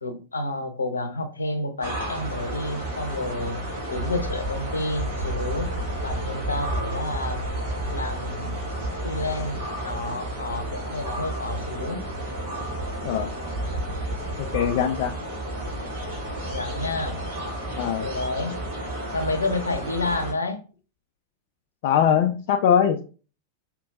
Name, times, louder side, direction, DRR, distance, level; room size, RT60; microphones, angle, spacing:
voice 1, 0.0-5.7 6.0-7.4 7.9-8.6 9.0-12.1 16.5-17.2 18.0-18.5 19.1-20.6, left 2 dB, 75° left, 0.7 m, -30 dB
sound 1, 1.8-20.3, right 1 dB, 50° right, 2.4 m, -31 dB
voice 2, 14.4-15.2 17.8-18.1 21.8-23.0, left 8 dB, 50° left, 0.4 m, -22 dB
5.9 x 3.6 x 2.4 m
figure-of-eight pair, 90°, 0 cm